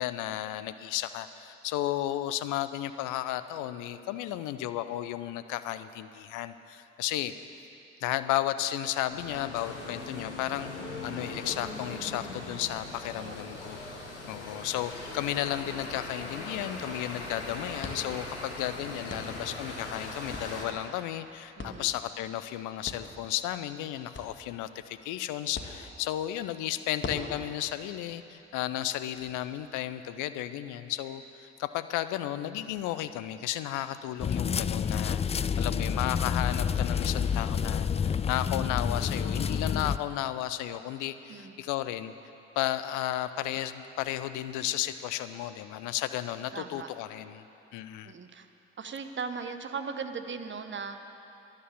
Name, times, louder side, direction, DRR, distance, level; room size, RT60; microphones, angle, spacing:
voice 1, 0.0-7.3 8.0-10.7 11.0-13.8 14.3-42.1 42.6-47.4 47.7-48.1, left 13 dB, 65° left, 12 dB, 0.7 m, -33 dB
sound 1, 9.1-20.7, left 2 dB, 90° left, 1.2 m, -40 dB
sound 2, 17.8-29.3, left 3 dB, 35° left, 1.8 m, -46 dB
voice 2, 21.6-21.9 41.3-41.6 46.5-46.9 48.0-48.5 48.8-51.1, right 5 dB, 35° right, 8 dB, 1.1 m, -38 dB
sound 3, 34.2-40.0, left 7 dB, 20° left, 0.3 m, -29 dB
13.0 x 11.0 x 7.4 m, 2.9 s
figure-of-eight pair, 45°, 34 cm